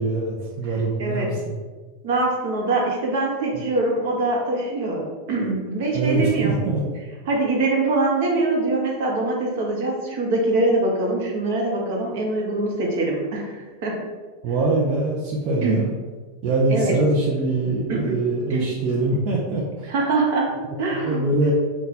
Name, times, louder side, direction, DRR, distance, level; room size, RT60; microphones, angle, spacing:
voice 1, 0.0-1.5 3.5-3.6 5.9-6.8 14.4-15.9 16.4-19.9 20.9-21.5, right 2 dB, 35° right, -4 dB, 0.5 m, -23 dB
voice 2, 0.6-1.3 2.0-6.5 7.3-14.0 15.6-15.8 16.7-16.9 17.9-18.1 18.5-18.7 19.9-21.2, right 2 dB, 60° right, -1 dB, 0.8 m, -23 dB
2.7 x 2.2 x 4.1 m, 1.4 s
supercardioid pair, 165°, 0 cm